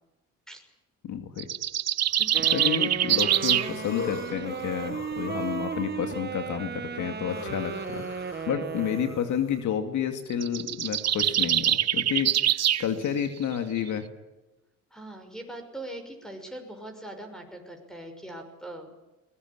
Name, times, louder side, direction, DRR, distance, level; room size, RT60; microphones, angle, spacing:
voice 1, 1.0-1.5 2.5-14.0, left 8 dB, 75° left, 7 dB, 2.6 m, -30 dB
sound 1, 1.4-3.7 10.3-12.9, right 11 dB, 60° right, 1.0 m, -24 dB
sound 2, 2.1-2.5 2.9-9.6, left 4 dB, 45° left, 5.6 m, -41 dB
Wind instrument woodwind instrument, 2.3-9.3, right 6 dB, 35° right, 1.5 m, -35 dB
voice 2, 14.9-18.9, right 1 dB, ahead, 5 dB, 5.9 m, -41 dB
21.5 x 19.5 x 9.7 m, 1.0 s
cardioid pair, 90°, 30 cm